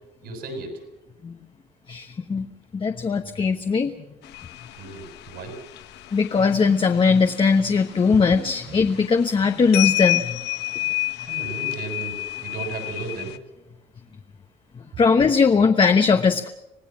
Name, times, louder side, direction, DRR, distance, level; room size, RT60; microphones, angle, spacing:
voice 1, 0.2-0.8 4.8-5.6 8.6-8.9 11.3-12.2 12.4-13.4, right 4 dB, 70° right, 5 dB, 7.3 m, -35 dB
voice 2, 1.9-2.5 2.7-3.9 6.1-10.4 15.0-16.5, left 5 dB, 30° left, 5 dB, 1.1 m, -19 dB
sound 1, 4.2-13.4, left 19 dB, 85° left, 1.1 m, -30 dB
26.5 x 18.0 x 7.3 m, 0.90 s
cardioid pair, 110°, 17 cm